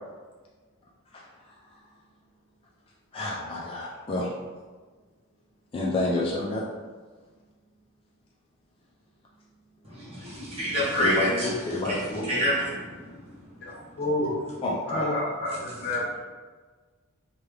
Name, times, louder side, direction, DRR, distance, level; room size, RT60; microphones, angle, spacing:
voice 1, 3.1-4.3 5.7-6.6 9.9-10.0 11.0-12.3 14.6-15.1, left 2 dB, 25° left, -4 dB, 0.3 m, -28 dB
voice 2, 9.9-11.5 11.8-11.9 12.3-13.1, equal, 30° right, -8 dB, 0.9 m, -27 dB
voice 3, 13.6-14.3 14.9-16.2, left 1 dB, 50° left, -7 dB, 0.7 m, -29 dB
3.2 x 2.3 x 3.2 m, 1.4 s
head